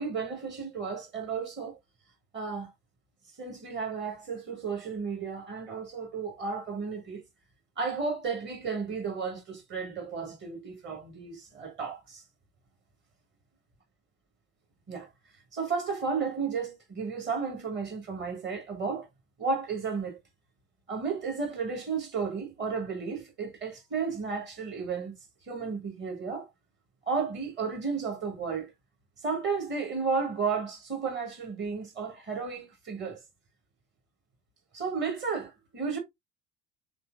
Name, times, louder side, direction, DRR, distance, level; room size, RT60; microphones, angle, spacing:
voice 1, 0.0-1.8 2.3-2.7 3.4-7.2 7.8-12.2 14.9-15.1 15.5-19.1 19.4-20.2 20.9-25.2 25.4-26.5 27.1-28.7 29.2-33.2 34.7-36.0, right 5 dB, 30° right, 1.2 m, -33 dB
3.1 x 2.9 x 2.4 m
figure-of-eight pair, 70°, 38 cm